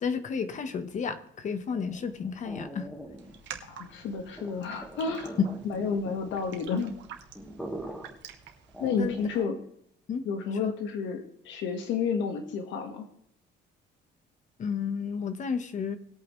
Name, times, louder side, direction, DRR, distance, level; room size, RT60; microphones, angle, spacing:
voice 1, 0.0-2.9 5.4-5.5 5.8-5.9 8.8-9.2 10.1-10.2 10.6-10.7 14.6-16.0, left 6 dB, 40° left, 1.2 m, -31 dB
sound 1, 1.7-9.5, right 1 dB, 5° left, 1.6 m, -44 dB
Raindrop, 3.2-9.4, right 9 dB, 70° right, 1.8 m, -48 dB
voice 2, 3.7-5.4 5.6-6.9 8.8-9.6 10.2-13.1, left 5 dB, 80° left, 1.6 m, -31 dB
20.5 x 8.7 x 3.2 m
cardioid pair, 150°, 19 cm